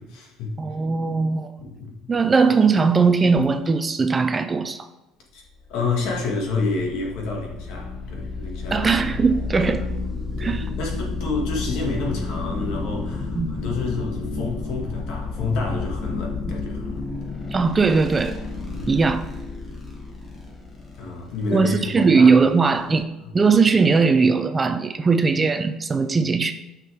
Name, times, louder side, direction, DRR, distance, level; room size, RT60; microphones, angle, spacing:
voice 1, 0.0-0.6 1.6-2.1 5.3-5.4 5.7-8.9 10.4-17.1 18.7-19.0 21.0-22.3, left 3 dB, 65° left, 0 dB, 2.0 m, -29 dB
voice 2, 0.6-1.5 2.1-4.9 8.7-9.8 10.4-10.6 13.4-13.5 17.5-18.4 18.9-19.2 21.5-23.0 23.3-26.5, right 4 dB, 15° right, 9 dB, 0.4 m, -19 dB
sound 1, 5.6-23.0, left 3 dB, 15° left, 1.1 m, -31 dB
9.8 x 6.0 x 3.6 m, 0.97 s
cardioid pair, 180°, 0 cm